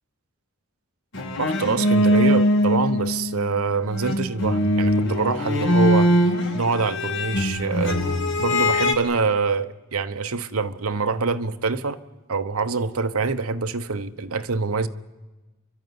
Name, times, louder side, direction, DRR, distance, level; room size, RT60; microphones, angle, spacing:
sound 1, 1.1-3.6 3.9-8.9, equal, 60° left, 2.2 m, -21 dB
voice 1, 1.4-6.1 6.5-8.0 8.4-12.0 12.3-14.9, right 4 dB, 85° right, 1.0 m, -25 dB
29.5 x 12.0 x 9.6 m
head